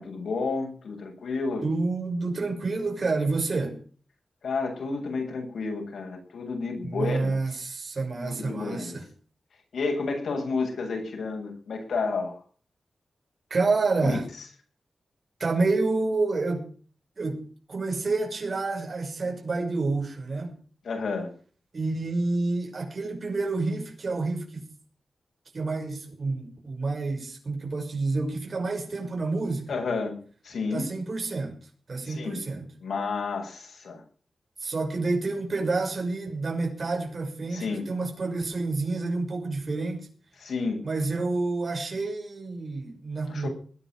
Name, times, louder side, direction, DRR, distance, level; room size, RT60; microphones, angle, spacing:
voice 1, 0.0-1.6 4.4-7.4 8.2-9.0 9.7-12.4 20.8-21.3 29.7-30.9 32.1-32.4 32.8-34.0 37.5-37.9 40.4-40.8 43.3-43.5, left 4 dB, 85° left, 7.9 m, -31 dB
voice 2, 1.6-3.8 6.8-9.1 13.5-14.3 15.4-16.7 17.2-20.6 21.7-24.7 25.5-29.7 30.7-31.6 31.9-32.7 34.6-40.1 40.8-43.5, right 3 dB, 40° right, 6.1 m, -28 dB
20.5 x 10.5 x 6.5 m
wide cardioid pair, 140°, 0 cm